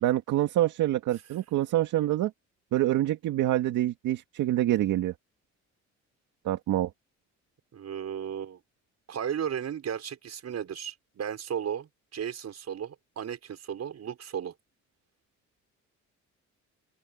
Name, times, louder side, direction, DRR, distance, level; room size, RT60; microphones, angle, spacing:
voice 1, 0.0-2.3 2.7-5.1 6.5-6.9, right 13 dB, 85° right, 2.0 m, -26 dB
voice 2, 7.7-8.6 9.1-14.5, right 8 dB, 60° right, 5.8 m, -35 dB
open air
cardioid pair, 90°, 30 cm